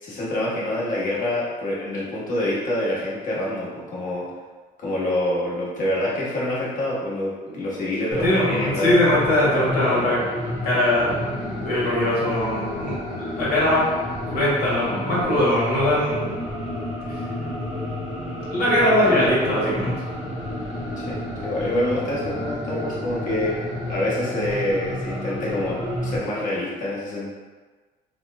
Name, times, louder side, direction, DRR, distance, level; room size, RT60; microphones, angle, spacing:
voice 1, 0.0-4.3 4.8-9.0 21.0-27.3, left 1 dB, 50° left, -6 dB, 1.1 m, -26 dB
sound 1, 8.1-26.2, left 1 dB, ahead, 0.8 m, -30 dB
voice 2, 8.2-10.2 10.6-13.8 14.2-16.4 18.5-19.9, left 1 dB, 70° left, -7 dB, 1.3 m, -21 dB
2.9 x 2.1 x 3.4 m, 1.4 s
cardioid pair, 110°, 17 cm